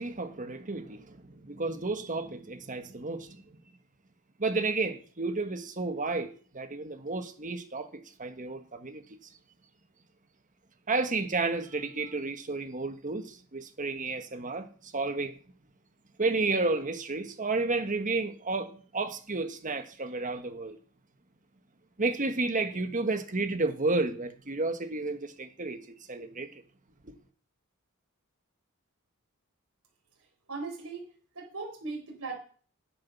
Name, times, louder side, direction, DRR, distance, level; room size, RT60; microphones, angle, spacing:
voice 1, 0.0-3.6 4.4-9.0 10.9-15.4 16.2-20.8 22.0-26.5 27.0-27.1, right 3 dB, 35° right, 1.4 m, -32 dB
voice 2, 30.5-31.0 31.3-32.3, right 3 dB, 75° right, 4.2 m, -38 dB
10.0 x 8.8 x 5.9 m
head